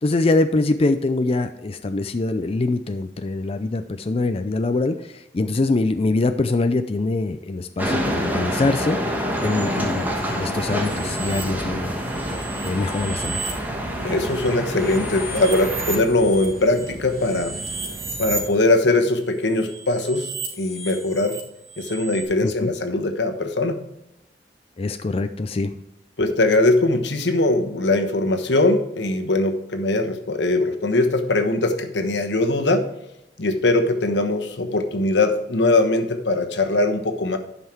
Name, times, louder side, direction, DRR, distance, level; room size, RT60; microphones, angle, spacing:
voice 1, 0.0-9.0 9.4-12.0 12.6-13.4 22.4-22.7 24.8-25.7, left 2 dB, 35° left, 9 dB, 0.4 m, -23 dB
sound 1, 7.8-16.0, equal, 10° right, 1.3 m, -27 dB
sound 2, 9.5-18.5, right 1 dB, 55° right, 1.5 m, -37 dB
sound 3, 10.8-11.4 12.1-13.5 14.1-18.5 19.4-22.2, right 3 dB, 80° right, 3.1 m, -34 dB
voice 2, 14.0-17.6 18.2-20.3 20.6-21.4 21.8-23.8 26.2-32.9 33.4-37.4, left 2 dB, 85° left, 6 dB, 1.2 m, -21 dB
11.0 x 5.6 x 4.5 m, 0.86 s
head